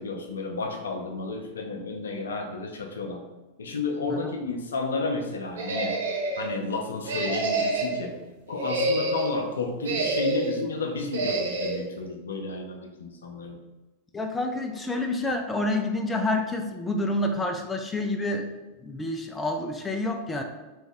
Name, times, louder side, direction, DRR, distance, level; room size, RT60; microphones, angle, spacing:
voice 1, 0.0-3.2 3.6-6.0 6.4-8.2 8.5-13.6, left 3 dB, 70° left, 3 dB, 0.6 m, -32 dB
sound 1, 5.6-6.5 7.0-8.0 8.5-9.4 9.8-10.6 11.1-11.8, right 2 dB, 60° right, 0.7 m, -27 dB
voice 2, 14.1-18.5 18.8-20.4, left 2 dB, 10° left, 4 dB, 0.4 m, -28 dB
3.5 x 3.1 x 3.5 m, 1.1 s
figure-of-eight pair, 90°, 0 cm